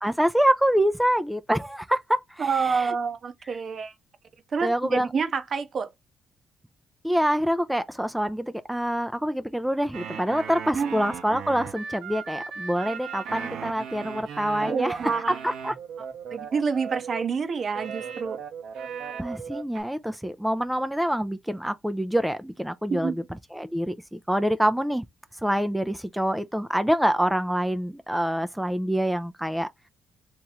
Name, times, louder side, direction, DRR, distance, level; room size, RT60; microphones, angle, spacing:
voice 1, 0.0-2.9 4.6-5.1 7.0-14.9 15.3-15.7 19.2-23.2 23.5-25.0 25.4-29.7, equal, 5° right, 0.4 m, -26 dB
voice 2, 2.4-3.9 4.5-5.9 10.7-10.9 14.6-15.4 16.3-18.5 22.9-23.2, right 5 dB, 50° right, 0.7 m, -28 dB
sound 1, 9.9-17.2 17.7-19.8, right 7 dB, 80° right, 0.9 m, -37 dB
3.0 x 2.9 x 3.6 m
cardioid pair, 90°, 0 cm